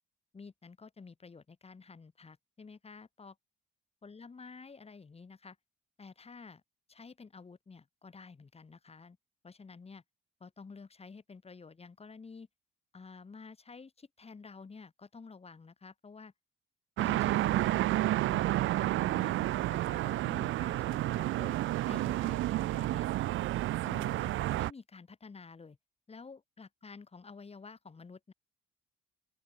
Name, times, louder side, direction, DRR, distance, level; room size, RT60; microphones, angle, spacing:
voice 1, 0.3-3.4 4.0-5.6 6.0-6.6 6.9-9.2 9.4-10.0 10.4-12.5 12.9-16.3 17.0-21.6 21.9-23.1 23.8-25.8 26.1-28.3, left 4 dB, 30° left, 3.9 m, -50 dB
sound 1, 17.0-24.7, right 15 dB, 85° right, 1.0 m, -30 dB
open air
cardioid pair, 90°, 20 cm